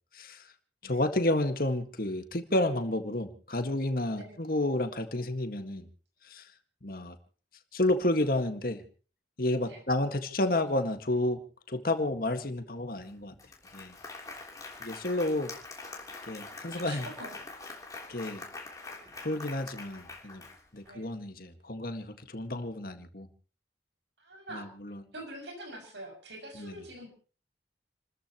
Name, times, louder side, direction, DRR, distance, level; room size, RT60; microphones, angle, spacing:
voice 1, 0.1-0.5 0.8-5.9 6.2-6.5 6.8-7.2 7.7-8.8 9.4-11.4 11.7-13.4 13.7-14.0 14.8-15.5 16.2-17.1 18.1-18.4 19.2-20.4 20.7-23.3 24.5-25.0 26.6-26.7, left 1 dB, 55° left, 8 dB, 1.8 m, -30 dB
Applause, 13.0-13.1 13.4-20.9, left 3 dB, 20° left, 3.4 m, -44 dB
voice 2, 16.8-17.4 18.8-19.0 20.8-21.1 24.2-24.7 25.1-27.1, right 1 dB, 90° right, 3 dB, 6.7 m, -45 dB
30.0 x 14.0 x 3.0 m, 0.38 s
head